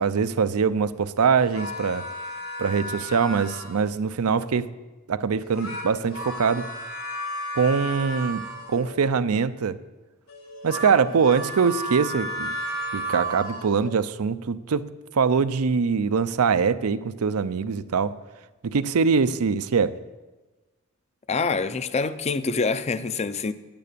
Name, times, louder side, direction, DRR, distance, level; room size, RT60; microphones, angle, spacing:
voice 1, 0.0-2.1 2.6-4.7 5.1-6.7 7.6-8.4 8.7-9.8 10.6-12.6 12.9-18.2 18.6-20.0, right 5 dB, 80° right, 0.5 m, -23 dB
sound 1, 1.4-4.0 5.4-9.0 10.3-13.9, right 1 dB, 80° left, 4.3 m, -33 dB
voice 2, 21.3-23.5, left 4 dB, 30° left, 0.5 m, -26 dB
9.8 x 9.2 x 6.7 m
head